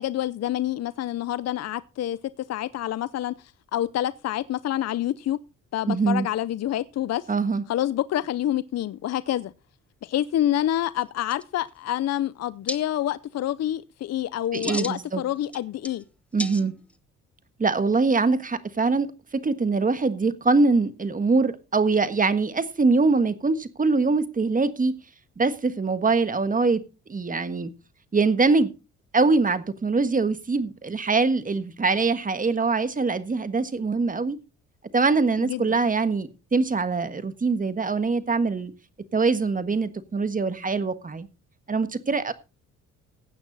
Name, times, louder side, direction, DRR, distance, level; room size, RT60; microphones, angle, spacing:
voice 1, 0.0-2.2 2.5-5.4 5.7-7.3 7.7-9.5 10.0-16.0 35.4-35.8, left 12 dB, 60° left, 0.6 m, -27 dB
voice 2, 5.9-6.3 7.3-7.6 14.5-15.2 16.3-16.7 17.6-24.9 25.4-26.8 27.1-27.7 28.1-28.7 29.1-34.4 34.9-38.7 39.1-41.3 41.7-42.3, right 4 dB, 25° right, 1.5 m, -23 dB
sound 1, 11.0-11.1 11.3-11.9 12.7-12.8 14.4-15.0 15.4-16.0 16.4-17.0, left 1 dB, 5° left, 0.8 m, -34 dB
16.0 x 9.3 x 4.1 m
cardioid pair, 90°, 30 cm